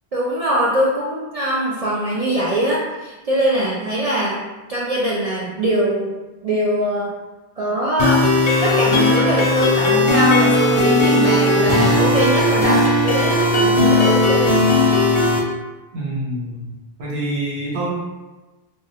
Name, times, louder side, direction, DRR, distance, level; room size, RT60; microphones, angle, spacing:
voice 1, 0.1-4.4 4.7-6.1 6.4-7.1 7.6-8.2 8.6-14.5, right 1 dB, 55° right, -5 dB, 0.4 m, -22 dB
sound 1, 8.0-15.4, left 2 dB, 45° left, 0.6 m, -16 dB
voice 2, 15.9-16.7 17.0-18.2, right 1 dB, 90° right, -4 dB, 1.1 m, -26 dB
3.4 x 2.2 x 2.7 m, 1.1 s
omnidirectional pair, 1.0 m